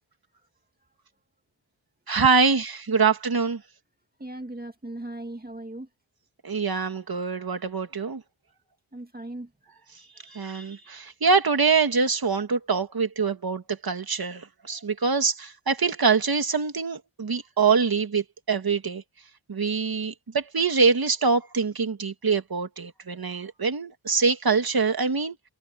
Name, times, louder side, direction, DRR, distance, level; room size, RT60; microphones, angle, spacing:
voice 1, 2.1-3.6 6.4-8.2 10.2-19.0 19.5-25.4, right 5 dB, 45° right, 2.2 m, -24 dB
voice 2, 4.2-5.9 8.9-9.5, right 1 dB, 20° right, 2.3 m, -38 dB
wide cardioid pair, 125°, 48 cm